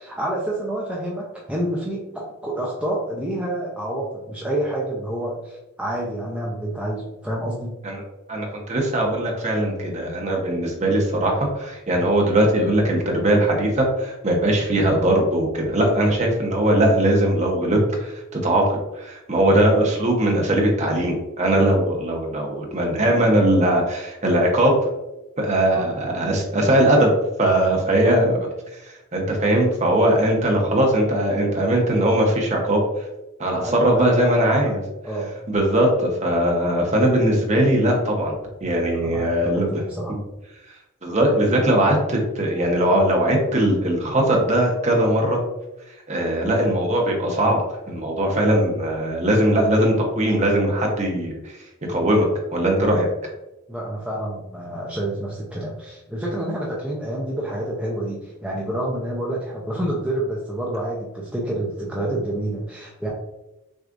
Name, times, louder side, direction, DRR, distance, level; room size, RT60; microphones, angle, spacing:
voice 1, 0.0-7.7 25.7-25.9 28.0-28.1 33.5-34.8 35.0-35.3 38.9-40.2 53.7-63.1, right 1 dB, 5° right, -4 dB, 0.5 m, -28 dB
voice 2, 8.3-24.8 25.4-27.1 27.4-28.4 29.1-32.8 33.4-34.8 35.5-38.3 38.6-39.8 41.0-45.4 46.1-47.6 47.9-51.5 51.9-53.1, right 1 dB, 35° right, 0 dB, 0.8 m, -20 dB
6.2 x 2.4 x 2.5 m, 0.97 s
head